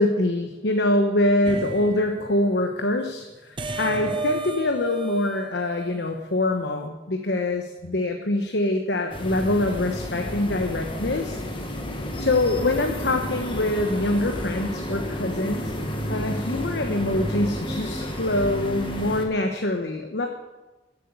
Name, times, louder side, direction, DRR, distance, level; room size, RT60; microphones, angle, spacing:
voice 1, 0.0-11.4 12.2-15.6 16.1-20.3, left 1 dB, 70° left, 4 dB, 1.1 m, -24 dB
sound 1, 1.4-2.4 3.6-6.4, right 3 dB, 25° right, 0.8 m, -33 dB
sound 2, 9.1-19.2, left 1 dB, 30° left, 1.8 m, -31 dB
14.0 x 8.4 x 8.2 m, 1.2 s
head